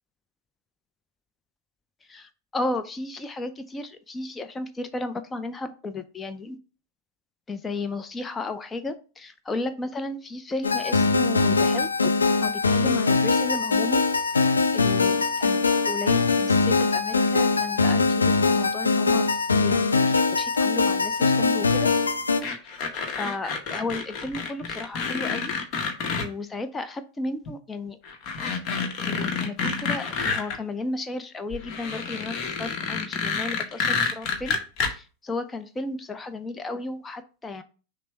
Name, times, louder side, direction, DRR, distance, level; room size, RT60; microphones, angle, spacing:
voice 1, 2.1-6.6 7.5-12.1 12.4-14.0 14.7-19.3 19.6-21.9 23.2-25.5 26.2-28.0 29.0-34.6 34.9-37.6, left 2 dB, 20° left, 10 dB, 0.4 m, -34 dB
sound 1, 10.6-22.4, left 4 dB, 85° left, 0.4 m, -22 dB
sound 2, 22.4-26.3 27.5-27.6 28.0-30.6 31.5-34.9, left 5 dB, 45° left, 0.8 m, -29 dB
6.0 x 2.0 x 4.4 m, 0.36 s
figure-of-eight pair, 90°, 0 cm